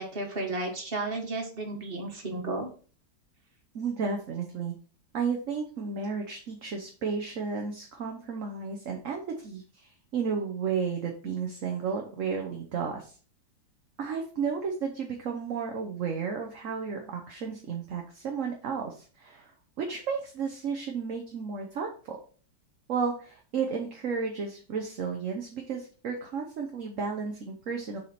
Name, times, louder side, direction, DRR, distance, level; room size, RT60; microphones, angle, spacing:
voice 1, 0.0-2.7, right 2 dB, 30° right, 1 dB, 1.8 m, -33 dB
voice 2, 3.7-4.7 5.1-13.1 14.0-19.5 19.8-22.2 22.9-28.0, right 5 dB, 50° right, 2 dB, 1.2 m, -33 dB
6.7 x 4.9 x 4.3 m, 0.40 s
omnidirectional pair, 1.9 m